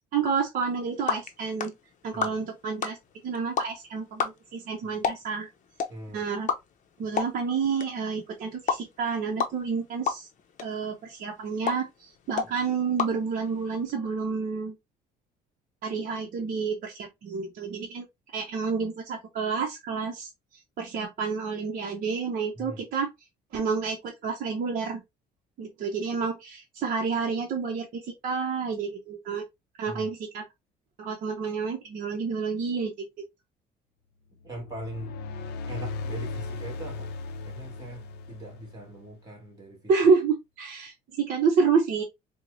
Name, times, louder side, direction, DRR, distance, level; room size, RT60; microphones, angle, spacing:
voice 1, 0.1-1.7 2.0-3.0 3.2-5.5 6.1-6.5 7.0-10.3 10.6-14.7 15.8-18.1 18.3-20.3 20.8-23.1 23.5-25.0 25.6-29.4 29.8-30.4 31.0-33.1 39.9-42.0, right 5 dB, 55° right, 0.7 m, -29 dB
sound 1, 0.6-13.9, left 6 dB, 50° left, 0.6 m, -35 dB
voice 2, 5.9-6.2 22.5-22.8 29.8-30.1 34.4-35.2 35.7-37.1 37.4-39.8, right 1 dB, 25° right, 1.6 m, -41 dB
sound 2, 34.4-39.1, left 3 dB, 90° left, 0.5 m, -37 dB
4.4 x 2.1 x 2.6 m
cardioid pair, 110°, 17 cm